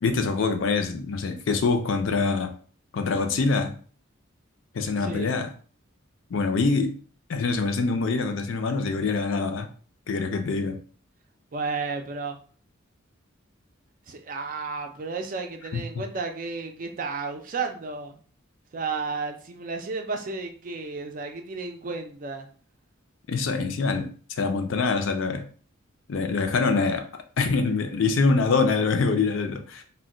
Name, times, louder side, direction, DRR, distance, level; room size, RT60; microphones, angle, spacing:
voice 1, 0.0-2.5 2.9-3.7 4.7-5.5 6.3-7.0 7.3-9.7 10.1-10.8 15.7-15.8 23.3-25.5 26.1-27.1 27.4-29.8, left 4 dB, 70° left, 6 dB, 0.4 m, -24 dB
voice 2, 5.0-5.3 11.5-12.4 14.1-18.2 18.7-22.5, right 4 dB, 40° right, 5 dB, 0.4 m, -32 dB
2.2 x 2.2 x 3.7 m, 0.42 s
head